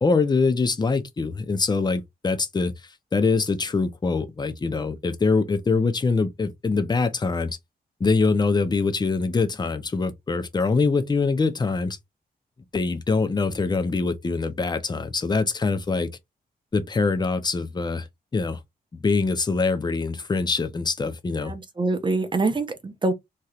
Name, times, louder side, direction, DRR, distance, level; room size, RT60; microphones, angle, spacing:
voice 1, 0.0-2.7 3.1-7.6 8.0-12.0 12.7-16.1 16.7-18.1 18.3-18.6 19.0-21.5, left 4 dB, 25° left, 0.6 m, -24 dB
voice 2, 21.5-23.1, right 3 dB, 30° right, 0.6 m, -25 dB
3.1 x 2.8 x 2.3 m
wide cardioid pair, 105°, 16 cm